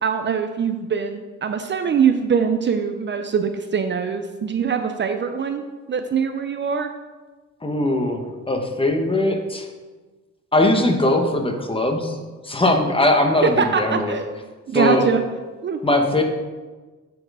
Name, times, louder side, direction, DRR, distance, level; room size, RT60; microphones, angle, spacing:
voice 1, 0.0-6.9 13.4-14.3 14.7-15.2 15.6-15.8, right 6 dB, 40° right, 7 dB, 0.5 m, -23 dB
voice 2, 7.6-9.7 10.5-12.2 12.4-14.2 14.7-15.1 15.8-16.2, left 1 dB, 20° left, 4 dB, 1.1 m, -20 dB
8.5 x 4.4 x 4.8 m, 1.3 s
cardioid pair, 90°, 30 cm